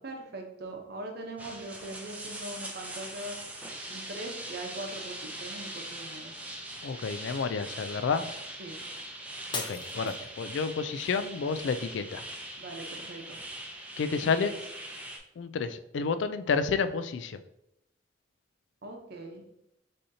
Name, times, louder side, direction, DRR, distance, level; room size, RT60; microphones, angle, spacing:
voice 1, 0.0-3.4 3.9-6.5 8.6-8.8 12.6-13.4 14.2-14.5 18.8-19.4, right 2 dB, 60° right, 2 dB, 0.8 m, -41 dB
sound 1, 1.4-15.2, right 1 dB, 10° right, 0.5 m, -41 dB
voice 2, 6.8-8.2 9.5-12.2 14.0-14.5 15.4-17.4, left 5 dB, 80° left, 11 dB, 0.4 m, -30 dB
Shatter, 9.5-10.8 11.3-11.8 12.3-12.4, left 3 dB, 25° left, 0.7 m, -38 dB
6.4 x 2.8 x 2.7 m, 0.82 s
head